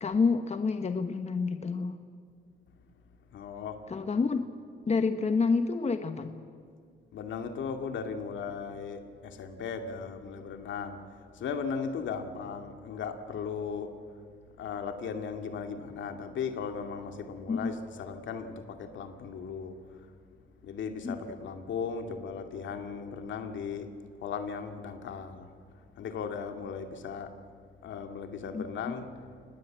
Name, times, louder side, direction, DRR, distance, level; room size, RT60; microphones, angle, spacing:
voice 1, 0.0-2.0 3.9-4.4 4.9-6.4 17.5-17.7 21.0-21.1 28.5-29.0, left 4 dB, 35° left, 8 dB, 1.2 m, -28 dB
voice 2, 3.3-3.9 4.2-4.3 7.1-13.9 14.6-20.1 20.6-23.9 24.2-27.3 27.8-29.1, left 6 dB, 70° left, 6 dB, 2.3 m, -37 dB
26.0 x 20.0 x 7.8 m, 2.2 s
cardioid pair, 90°, 20 cm